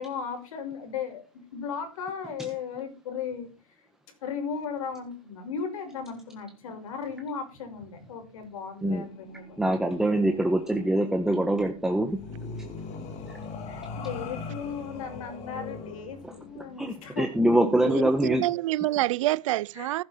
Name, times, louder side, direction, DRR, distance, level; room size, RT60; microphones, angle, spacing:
voice 1, 0.0-3.5 4.2-9.6 13.7-17.4 19.8-20.0, left 6 dB, 70° left, 5.9 m, -36 dB
sound 1, 9.1-18.0, left 4 dB, 40° left, 3.0 m, -41 dB
voice 2, 9.6-12.2 16.5-18.4, right 1 dB, ahead, 1.4 m, -24 dB
voice 3, 17.8-20.0, right 17 dB, 60° right, 0.5 m, -27 dB
15.5 x 8.9 x 4.5 m
hypercardioid pair, 120°, 18 cm